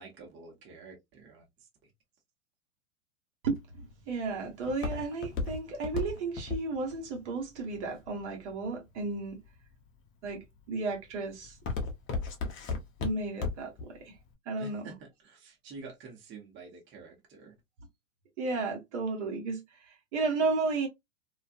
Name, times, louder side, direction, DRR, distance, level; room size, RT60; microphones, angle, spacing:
voice 1, 0.0-1.4 14.6-17.5, right 3 dB, 30° right, 1.1 m, -48 dB
voice 2, 3.4-9.4 10.2-11.6 13.0-14.2 14.5-14.9 18.4-20.9, right 3 dB, 60° right, 1.1 m, -33 dB
Walk footsteps, 3.5-8.7 9.3-9.7 10.2-10.6 10.9-13.8 14.2-14.3, left 4 dB, 30° left, 0.7 m, -34 dB
2.5 x 2.3 x 2.5 m
hypercardioid pair, 105°, 40 cm